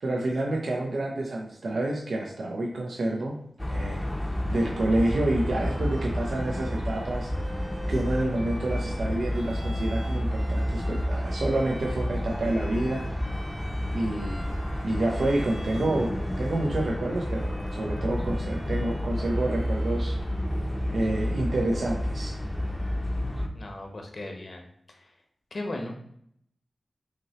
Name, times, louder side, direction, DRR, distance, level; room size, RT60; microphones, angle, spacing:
voice 1, 0.0-3.4 3.7-4.0 4.5-7.3 7.9-13.1 13.9-14.5 14.8-20.2 20.9-22.4, right 1 dB, 80° right, -1 dB, 0.6 m, -28 dB
sound 1, 3.6-23.5, equal, 10° left, 0.6 m, -30 dB
Bowed string instrument, 5.3-20.6, right 1 dB, 50° right, 1.6 m, -48 dB
voice 2, 23.5-24.7 25.5-25.9, left 1 dB, 55° left, 2 dB, 0.8 m, -36 dB
5.8 x 2.8 x 2.9 m, 0.68 s
wide cardioid pair, 105°, 0 cm